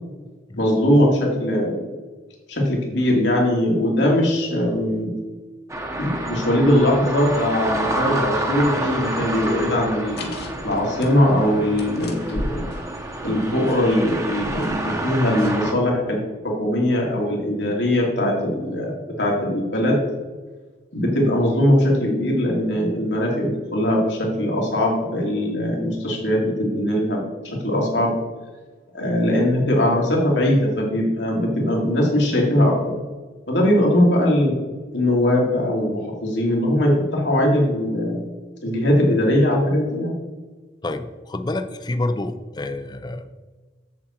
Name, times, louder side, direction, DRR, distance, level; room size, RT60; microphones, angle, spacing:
voice 1, 0.6-1.8 2.5-5.1 5.9-10.3 10.6-12.7 13.2-20.0 20.9-27.2 27.5-28.1 28.9-32.9 33.5-34.6 34.9-38.2 38.6-40.1, left 1 dB, 85° left, -2 dB, 2.5 m, -20 dB
sound 1, 5.7-15.7, right 1 dB, 15° right, 1.0 m, -29 dB
sound 2, 10.0-15.8, left 1 dB, 60° left, 1.4 m, -37 dB
voice 2, 40.8-43.3, left 2 dB, 25° left, 9 dB, 0.5 m, -28 dB
7.7 x 7.5 x 4.4 m, 1.3 s
head